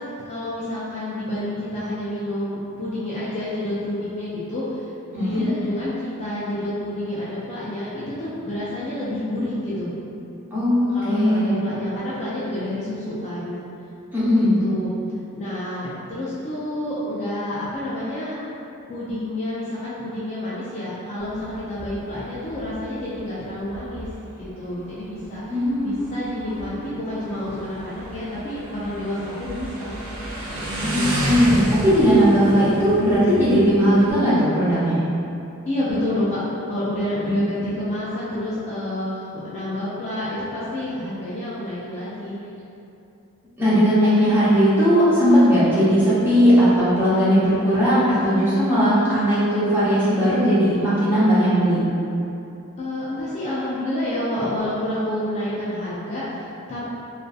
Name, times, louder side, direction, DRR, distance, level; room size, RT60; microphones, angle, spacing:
voice 1, 0.3-9.9 10.9-13.6 14.4-14.9 15.3-18.4 18.9-24.1 24.4-25.4 25.8-29.9 30.5-31.3 35.7-42.4 52.8-56.9, left 1 dB, 30° left, -10 dB, 0.4 m, -29 dB
voice 2, 10.5-11.6 14.1-14.6 25.5-26.1 30.8-35.0 37.2-37.5 43.6-51.8, equal, 10° right, -13 dB, 0.7 m, -18 dB
Motorcycle, 21.2-34.1, right 1 dB, 60° right, 0.4 m, -32 dB
2.5 x 2.4 x 2.3 m, 2.8 s
head